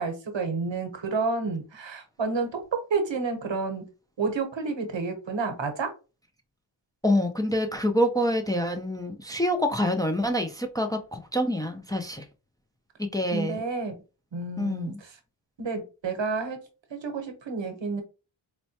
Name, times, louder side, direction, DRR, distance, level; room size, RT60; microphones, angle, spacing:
voice 1, 0.0-2.6 2.9-3.8 4.2-5.9 13.3-13.9 14.3-15.2 15.6-16.6 16.9-18.0, right 4 dB, 70° right, 6 dB, 0.9 m, -30 dB
voice 2, 7.0-12.2 13.1-13.6 14.6-14.9, equal, 10° left, 4 dB, 0.5 m, -26 dB
4.3 x 2.1 x 2.8 m, 0.32 s
wide cardioid pair, 55°, 46 cm